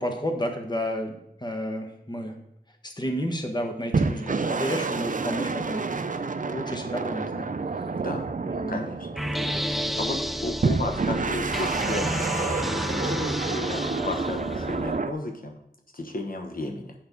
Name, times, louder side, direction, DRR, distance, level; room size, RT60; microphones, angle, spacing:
voice 1, 0.0-2.3 2.8-5.8 6.5-7.5 8.4-8.8 9.4-9.7, equal, 25° left, 4 dB, 1.3 m, -31 dB
sound 1, 3.9-9.8 10.6-15.1, right 4 dB, 50° right, 0.6 m, -29 dB
voice 2, 8.0-8.3 8.7-9.1 9.6-9.7 10.0-15.5 15.9-16.9, left 1 dB, 55° left, 2 dB, 1.1 m, -33 dB
sound 2, 9.2-15.0, equal, ahead, 0.5 m, -31 dB
7.2 x 5.4 x 5.3 m, 0.77 s
wide cardioid pair, 45°, 17 cm